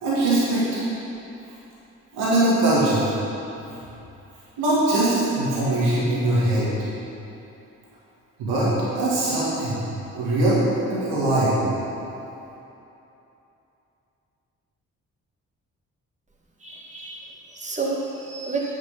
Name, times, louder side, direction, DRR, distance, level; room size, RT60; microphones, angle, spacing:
voice 1, 0.0-0.6 2.1-3.1 4.6-6.7 8.4-9.8 10.1-10.6 10.9-11.6, right 2 dB, 85° right, -8 dB, 2.1 m, -21 dB
voice 2, 16.6-18.8, right 3 dB, 20° right, -3 dB, 1.7 m, -30 dB
9.4 x 6.1 x 5.6 m, 2.9 s
hypercardioid pair, 40°, 38 cm